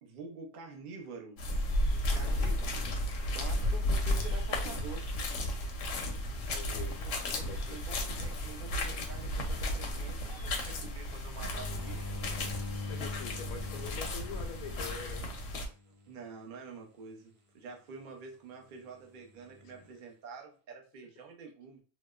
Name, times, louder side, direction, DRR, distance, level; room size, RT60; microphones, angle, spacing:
voice 1, 0.0-1.5 2.1-2.8 3.3-5.1 7.0-7.1 7.7-12.1 16.1-21.8, right 4 dB, 55° right, 1 dB, 0.5 m, -47 dB
sound 1, 1.4-15.7, left 1 dB, 70° left, 0.9 m, -34 dB
voice 2, 2.1-2.6 6.5-7.0 7.4-7.8 12.9-15.2, left 5 dB, 90° left, 5 dB, 1.1 m, -45 dB
sound 2, 11.4-16.1 19.3-19.9, left 4 dB, 90° right, 1.2 m, -43 dB
2.8 x 2.1 x 2.2 m, 0.37 s
omnidirectional pair, 1.5 m